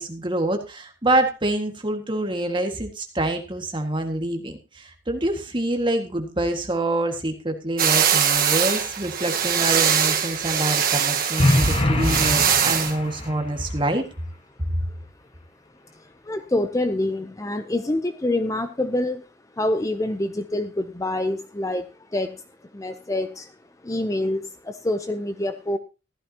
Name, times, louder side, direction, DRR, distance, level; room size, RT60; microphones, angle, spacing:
voice 1, 0.0-14.0, right 1 dB, 25° right, 5 dB, 1.8 m, -26 dB
sound 1, 7.8-12.9, right 8 dB, 50° right, 1.4 m, -22 dB
sound 2, 11.4-13.4, left 1 dB, 35° left, 1.4 m, -22 dB
voice 2, 16.2-19.2 19.6-22.4 22.7-23.5 23.8-25.8, left 1 dB, 20° left, 9 dB, 0.6 m, -26 dB
14.5 x 12.5 x 2.9 m, 0.29 s
head